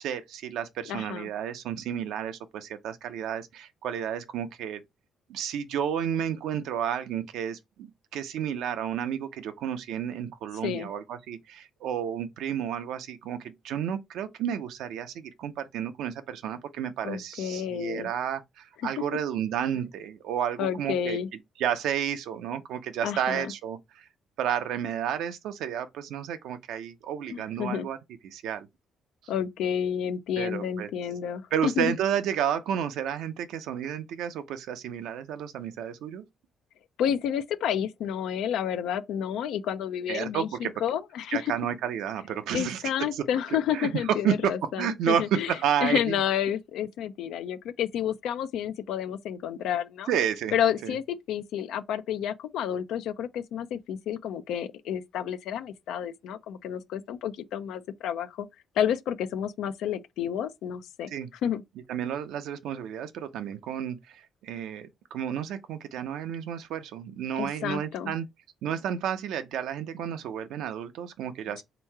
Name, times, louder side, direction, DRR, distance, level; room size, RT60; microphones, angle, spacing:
voice 1, 0.0-4.8 5.3-21.2 21.6-24.0 24.4-28.0 28.2-28.7 30.4-30.9 31.5-36.2 40.1-40.7 41.3-42.8 43.1-43.2 43.7-43.9 44.2-44.4 44.8-46.1 50.1-50.5 50.8-51.0 61.1-61.3 61.9-68.3 68.6-71.6, right 9 dB, 85° right, 0.7 m, -31 dB
voice 2, 0.9-1.3 10.6-10.9 17.0-18.1 20.6-21.3 23.0-23.5 27.3-27.9 29.3-32.0 37.0-41.5 42.5-45.5 45.8-50.1 50.5-58.5 58.8-61.1 61.4-61.6 67.4-68.1, left 9 dB, 85° left, 0.4 m, -30 dB
3.6 x 3.0 x 4.5 m
cardioid pair, 90°, 0 cm